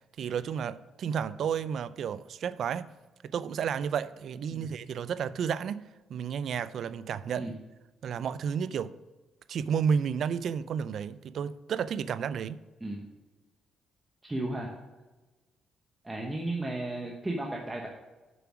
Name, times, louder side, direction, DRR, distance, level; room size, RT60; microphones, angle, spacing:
voice 1, 0.2-2.9 3.2-5.8 6.1-7.5 8.0-8.9 9.5-12.6, right 7 dB, 65° right, 0.4 m, -31 dB
voice 2, 14.2-14.7 16.0-17.9, right 2 dB, 15° right, 1.0 m, -34 dB
7.0 x 5.9 x 6.1 m
cardioid pair, 90°, 0 cm